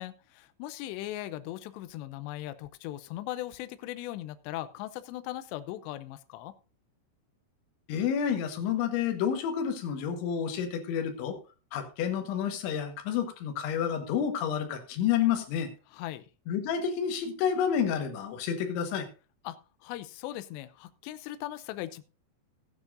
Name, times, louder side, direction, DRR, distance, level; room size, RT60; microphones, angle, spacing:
voice 1, 0.0-6.5 15.9-16.3 19.4-22.0, left 14 dB, 85° left, 13 dB, 2.5 m, -39 dB
voice 2, 7.9-11.4 11.7-15.7 16.5-19.1, left 8 dB, 70° left, 5 dB, 3.6 m, -29 dB
15.5 x 9.4 x 2.6 m, 0.33 s
omnidirectional pair, 5.8 m